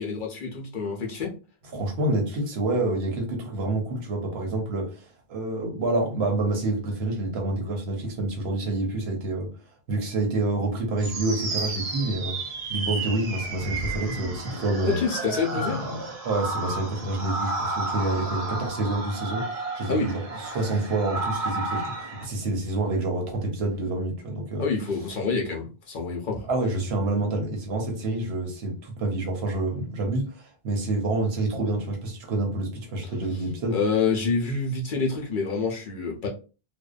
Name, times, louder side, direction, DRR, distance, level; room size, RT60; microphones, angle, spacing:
voice 1, 0.0-1.3 14.8-15.8 19.9-20.1 20.5-20.6 24.6-26.5 33.7-36.3, left 4 dB, 60° left, 0.8 m, -27 dB
voice 2, 1.7-9.6 9.9-15.0 15.5-24.6 26.5-33.8, right 2 dB, 90° right, 1.0 m, -28 dB
sound 1, 11.0-22.2, right 3 dB, 45° right, 0.5 m, -32 dB
2.6 x 2.1 x 2.4 m
omnidirectional pair, 1.0 m